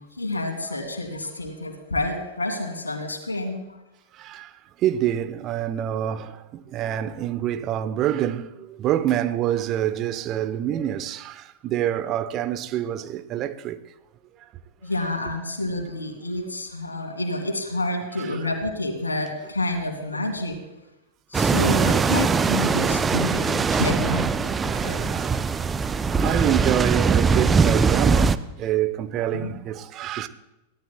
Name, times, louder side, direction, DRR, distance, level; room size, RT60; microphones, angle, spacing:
voice 1, 0.0-3.8 14.8-20.6 21.3-25.1 29.3-29.5, left 1 dB, 80° left, 2.7 m, -29 dB
voice 2, 4.1-4.5 4.8-13.8 14.4-14.5 18.2-18.4 21.6-22.0 23.4-23.7 24.5-25.5 26.2-30.3, right 11 dB, 35° right, 0.9 m, -27 dB
sound 1, 21.3-28.4, right 5 dB, 15° right, 0.5 m, -21 dB
23.5 x 17.0 x 2.3 m
figure-of-eight pair, 90°, 0 cm